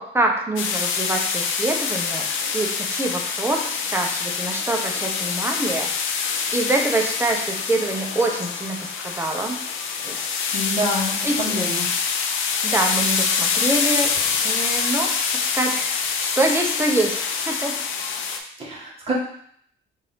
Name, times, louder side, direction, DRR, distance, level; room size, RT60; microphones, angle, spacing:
voice 1, 0.0-2.3 2.5-5.9 6.5-9.6 10.0-10.4 11.2-11.6 12.6-14.1 14.4-17.2 17.5-17.8, right 2 dB, 10° right, 1 dB, 0.8 m, -25 dB
sound 1, 0.6-18.4, left 6 dB, 85° left, 0.6 m, -25 dB
voice 2, 10.5-11.1 11.4-11.9 18.6-19.1, equal, 30° right, -5 dB, 1.6 m, -26 dB
5.1 x 2.7 x 3.6 m, 0.64 s
cardioid pair, 90°, 20 cm